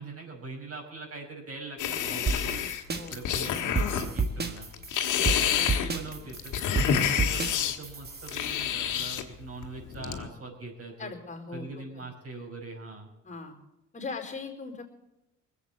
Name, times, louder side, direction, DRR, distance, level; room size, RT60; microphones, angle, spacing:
voice 1, 0.0-2.7 3.1-4.7 5.2-6.5 6.8-11.1 11.5-13.1, right 3 dB, 50° right, 0 dB, 5.4 m, -42 dB
sound 1, 1.8-4.1 4.6-7.8 8.3-9.2 9.6-10.3, left 9 dB, 85° left, 1.6 m, -28 dB
sound 2, 2.3-8.6, right 4 dB, 35° right, 1.8 m, -31 dB
voice 2, 11.0-11.7 13.2-13.6 13.9-14.8, left 4 dB, 25° left, 2 dB, 4.2 m, -39 dB
20.5 x 8.2 x 8.2 m, 0.91 s
cardioid pair, 90°, 30 cm